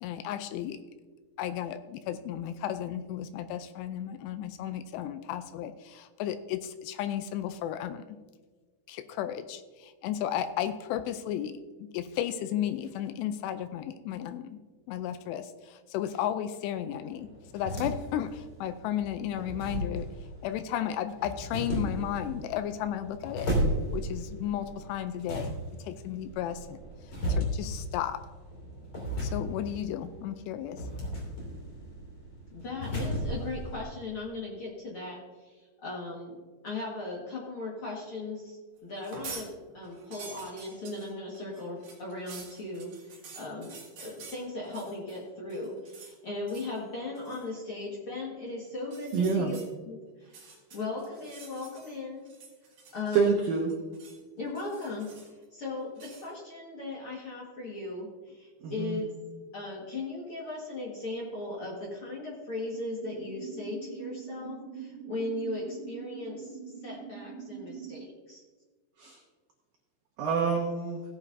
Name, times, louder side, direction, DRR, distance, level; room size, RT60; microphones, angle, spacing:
voice 1, 0.0-0.8 1.4-8.0 8.9-11.5 11.8-14.6 14.9-17.3 17.5-20.1 20.4-23.5 23.9-25.5 25.8-26.8 27.3-28.2 29.2-30.8, left 10 dB, 85° left, 10 dB, 2.5 m, -34 dB
sound 1, 17.1-33.8, equal, 30° left, 2.5 m, -35 dB
voice 2, 32.5-36.4 36.6-52.2 52.9-53.4 54.4-55.1 55.5-59.1 59.5-68.4, left 2 dB, 65° left, -5 dB, 1.3 m, -38 dB
sound 2, 38.9-39.5 39.8-45.2 45.5-46.2 46.5-46.8 47.2-47.5 48.8-49.7 50.2-52.0 52.3-53.2 53.4-54.2 54.6-55.4 56.0-56.3, right 4 dB, 50° right, 3.1 m, -48 dB
voice 3, 49.1-49.5 53.1-53.7 58.6-59.0 69.0-69.2 70.2-71.0, right 5 dB, 80° right, 1 dB, 2.0 m, -27 dB
sound 3, 63.0-68.0, right 7 dB, 65° right, 3.0 m, -43 dB
16.5 x 9.5 x 2.6 m, 1.4 s
omnidirectional pair, 5.3 m